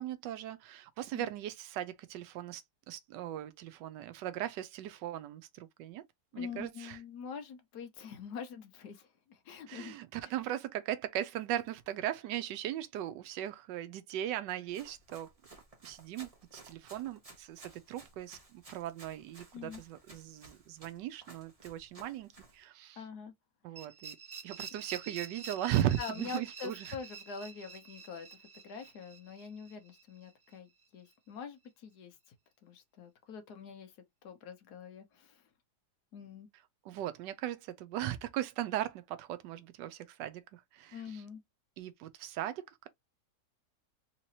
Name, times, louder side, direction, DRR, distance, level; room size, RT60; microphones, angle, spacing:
voice 1, 0.0-6.0 6.3-7.0 9.7-15.3 15.8-23.0 23.6-24.2 24.4-27.0 36.8-41.2 41.8-42.9, right 12 dB, 90° right, 1.2 m, -38 dB
voice 2, 6.4-10.0 19.5-19.8 23.0-23.3 23.7-23.9 26.0-28.4 28.6-32.2 32.6-33.9 34.2-35.4 36.1-36.5 40.9-41.4, left 6 dB, 70° left, 1.4 m, -45 dB
Run, 14.7-22.6, right 2 dB, 25° right, 0.9 m, -56 dB
sound 1, 23.8-30.6, right 5 dB, 60° right, 0.4 m, -48 dB
3.8 x 2.9 x 2.7 m
omnidirectional pair, 1.8 m